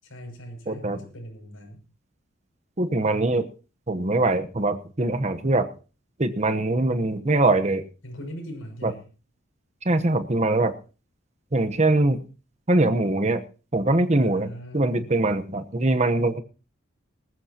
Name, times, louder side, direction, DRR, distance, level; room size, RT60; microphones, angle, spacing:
voice 1, 0.0-1.8 8.0-9.1 14.1-15.1, equal, 80° left, 1 dB, 6.6 m, -40 dB
voice 2, 0.7-1.0 2.8-3.5 3.9-5.7 6.2-7.8 8.8-8.9 9.8-10.7 11.5-12.2 12.7-13.4 13.7-14.5 14.7-16.4, right 2 dB, 35° right, 9 dB, 1.0 m, -22 dB
19.5 x 14.0 x 2.9 m, 0.34 s
head